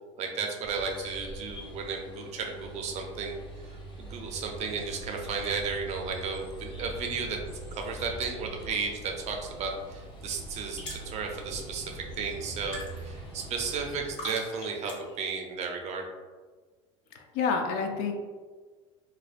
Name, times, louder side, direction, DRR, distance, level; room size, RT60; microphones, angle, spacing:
voice 1, 0.2-3.4 3.6-3.7 4.0-7.4 7.7-16.0, right 5 dB, 45° right, 2 dB, 0.5 m, -34 dB
sound 1, 0.6-14.1, right 1 dB, 30° left, 0.7 m, -43 dB
sound 2, 9.6-15.3, left 1 dB, 80° left, 1.3 m, -46 dB
voice 2, 17.1-18.2, left 5 dB, 65° left, 3 dB, 0.4 m, -29 dB
2.5 x 2.1 x 2.4 m, 1.4 s
supercardioid pair, 95°, 16 cm